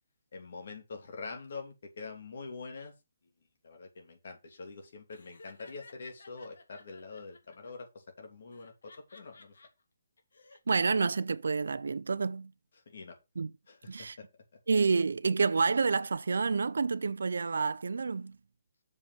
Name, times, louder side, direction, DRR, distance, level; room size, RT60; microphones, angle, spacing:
voice 1, 0.3-2.9 3.6-9.5 12.9-13.2 13.7-14.3, left 4 dB, 50° left, 2.9 m, -45 dB
Laughter, 5.1-7.7 8.5-9.7 10.2-10.6, left 3 dB, 75° left, 2.4 m, -56 dB
voice 2, 10.7-12.5 13.4-13.5 13.9-14.2 14.7-18.4, right 4 dB, 75° right, 0.6 m, -29 dB
7.0 x 5.3 x 6.0 m
hypercardioid pair, 175°, 0 cm